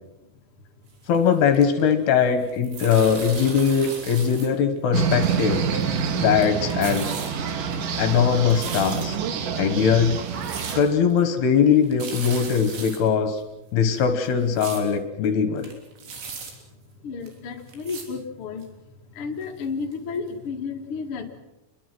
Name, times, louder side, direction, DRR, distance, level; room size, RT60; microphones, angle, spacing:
sound 1, 1.0-2.1 2.4-4.5 4.8-4.9 5.6-6.1 6.3-7.3 7.7-9.3 9.8-9.9 10.2-10.8 11.1-11.2 11.6-11.7 11.8-13.0 13.4-13.5 13.9-14.8 15.3-15.4 15.6-16.5 17.3-17.4 17.7-18.1 18.6-18.7 19.4-19.5 19.9-20.0 20.3-20.4, right 5 dB, 75° right, 5.7 m, -37 dB
voice 1, 1.1-5.7 6.2-7.1 8.0-9.2 9.6-10.2 10.8-13.4 13.7-15.7, left 7 dB, 70° left, 9 dB, 3.2 m, -21 dB
sound 2, 4.9-10.8, right 7 dB, 60° right, 2.6 m, -27 dB
voice 2, 17.0-18.6 19.1-21.4, left 5 dB, 40° left, 1 dB, 2.1 m, -32 dB
27.0 x 22.5 x 6.1 m, 0.96 s
omnidirectional pair, 5.2 m